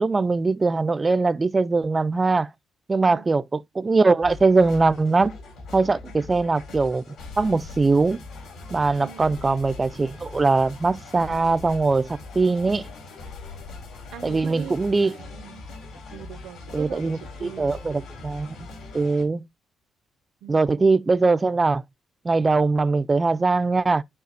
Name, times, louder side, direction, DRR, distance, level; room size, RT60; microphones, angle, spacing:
voice 1, 0.0-2.5 2.9-5.3 5.7-7.0 7.4-8.2 8.7-12.9 14.2-15.1 16.7-18.6 18.9-19.4 20.5-21.8 22.2-24.0, right 3 dB, 25° right, 0.3 m, -21 dB
sound 1, 4.2-19.2, left 3 dB, 80° left, 4.2 m, -41 dB
voice 2, 9.0-9.4 14.1-14.8 15.0-15.6 16.1-17.8 20.4-20.9, right 10 dB, 80° right, 0.6 m, -41 dB
12.0 x 4.8 x 2.8 m
cardioid pair, 90°, 0 cm